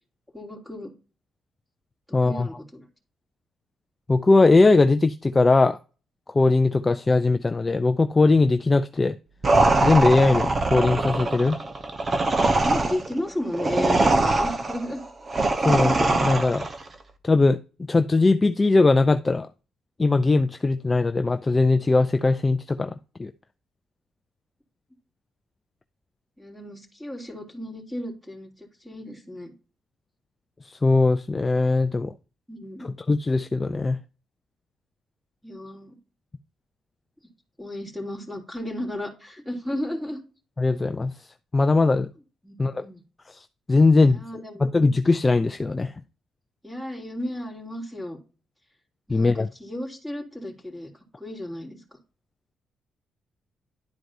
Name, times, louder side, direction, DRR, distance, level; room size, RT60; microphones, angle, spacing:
voice 1, 0.3-0.9 2.2-2.9 12.4-15.0 26.4-29.5 32.5-32.9 35.4-36.0 37.6-40.2 42.4-43.0 44.0-44.6 46.6-48.2 49.1-50.9 51.2-51.8, left 1 dB, 5° right, 2 dB, 3.0 m, -34 dB
voice 2, 2.1-2.5 4.1-5.8 6.3-9.1 9.8-11.6 15.6-16.7 17.2-17.6 17.9-19.5 20.0-23.3 30.7-32.1 33.1-34.0 40.6-41.1 41.5-42.1 42.6-42.9 43.3-44.2 44.6-45.9 49.1-49.5, left 3 dB, 25° left, 9 dB, 0.5 m, -20 dB
sound 1, 9.4-16.8, right 2 dB, 35° right, 1.1 m, -22 dB
11.5 x 4.5 x 2.7 m, 0.33 s
cardioid pair, 90°, 0 cm